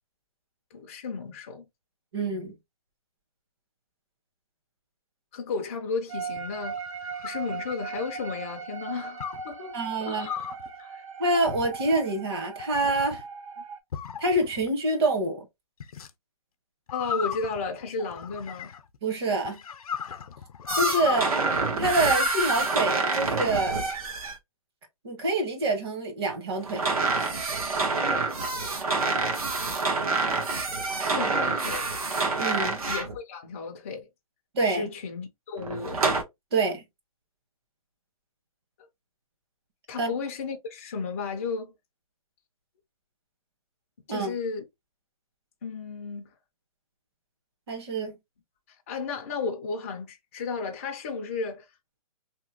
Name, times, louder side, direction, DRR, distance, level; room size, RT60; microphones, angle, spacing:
voice 1, 0.7-1.6 5.3-6.8 7.2-10.5 10.8-11.0 16.9-18.7 31.1-31.9 32.8-34.1 34.6-36.0 39.9-41.7 44.1-44.6 45.6-46.3 48.9-51.7, left 4 dB, 25° left, 0.3 m, -34 dB
voice 2, 2.1-2.5 9.7-10.3 11.2-13.2 14.2-15.4 19.0-19.6 20.7-21.3 21.8-23.8 25.0-26.8 32.4-32.8 34.5-34.9 36.5-36.8 40.0-40.1 44.1-44.3 47.7-48.1, right 2 dB, 45° right, 1.0 m, -26 dB
sound 1, 6.1-13.8, right 5 dB, 65° right, 0.7 m, -39 dB
sound 2, 6.4-8.2 9.2-9.5 10.2-10.7 11.5-12.0 12.6-13.2 13.9-14.7 15.8-16.1 16.9-19.0 19.4-21.3, left 8 dB, 85° left, 0.5 m, -35 dB
sound 3, 20.7-24.4 26.6-33.2 35.6-36.2, right 3 dB, 85° right, 1.1 m, -27 dB
2.8 x 2.1 x 2.8 m
hypercardioid pair, 170°, 18 cm